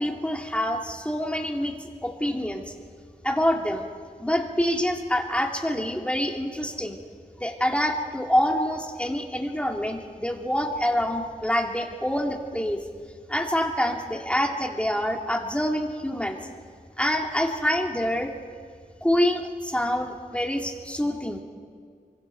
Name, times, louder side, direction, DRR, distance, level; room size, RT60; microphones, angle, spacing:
voice 1, 0.0-1.8 2.0-2.6 3.2-3.9 4.2-7.0 7.4-12.8 13.3-16.4 17.0-18.3 19.0-21.4, equal, 10° left, 2 dB, 2.3 m, -26 dB
29.5 x 24.5 x 4.5 m, 2.1 s
wide cardioid pair, 100°, 15 cm